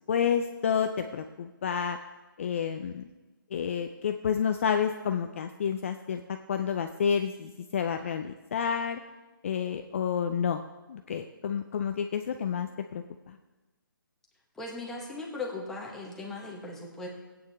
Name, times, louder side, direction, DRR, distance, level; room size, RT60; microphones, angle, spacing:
voice 1, 0.1-2.0 2.4-3.1 3.5-9.0 9.4-10.6 10.9-13.4, left 7 dB, 35° left, 6 dB, 0.5 m, -30 dB
voice 2, 14.5-17.1, left 3 dB, 5° left, -3 dB, 1.3 m, -38 dB
17.0 x 8.8 x 3.5 m, 1.2 s
hypercardioid pair, 160°, 12 cm